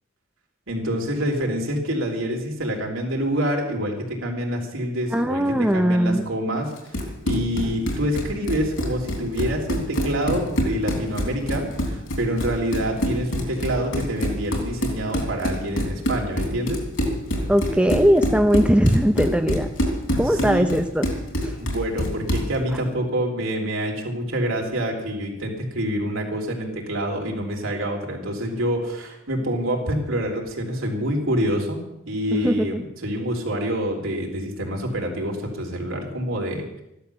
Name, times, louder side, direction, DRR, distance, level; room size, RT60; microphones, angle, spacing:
voice 1, 0.7-6.7 7.2-16.8 20.2-20.7 21.6-36.8, equal, 75° right, 0 dB, 3.6 m, -26 dB
voice 2, 5.1-6.2 17.5-19.7 20.2-21.1 21.4-21.5 32.3-32.8, equal, 5° right, 6 dB, 0.6 m, -20 dB
Run, 6.7-22.6, equal, 75° left, 3.4 m, -26 dB
14.5 x 11.5 x 6.9 m, 0.86 s
head